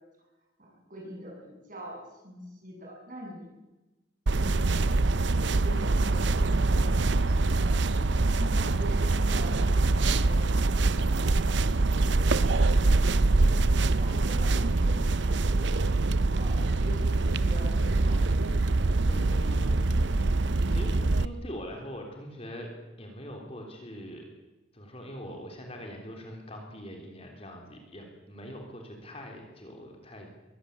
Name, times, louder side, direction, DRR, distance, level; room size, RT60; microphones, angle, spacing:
voice 1, 0.6-3.5 4.3-4.9 5.3-7.0 7.5-9.6 9.9-10.7 12.0-13.2 13.8-15.8 16.3-18.7, equal, 40° right, -1 dB, 7.9 m, -43 dB
sound 1, 4.3-21.2, right 2 dB, 60° right, 0.7 m, -24 dB
voice 2, 19.1-19.9 20.7-22.7 23.0-24.3 24.7-30.3, equal, 30° left, 2 dB, 3.5 m, -42 dB
22.5 x 15.5 x 8.5 m, 1.0 s
head